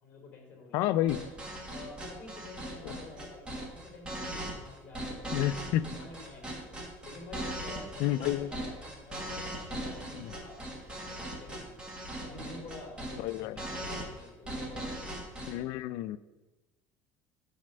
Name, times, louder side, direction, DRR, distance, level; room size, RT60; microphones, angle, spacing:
voice 1, 0.0-0.9 1.7-5.6 5.9-6.5 7.0-10.6 10.9-11.8 12.2-14.9 15.5-15.7, left 3 dB, 25° left, -1 dB, 2.9 m, -49 dB
voice 2, 0.7-1.2 2.8-3.0 5.3-5.9 8.0-8.5 10.2-10.3 13.2-13.6 15.5-16.2, left 13 dB, 60° left, 15 dB, 0.4 m, -30 dB
sound 1, 1.1-15.5, right 1 dB, 15° right, 1.4 m, -39 dB
9.6 x 4.2 x 6.6 m, 1.1 s
cardioid pair, 170°, 6 cm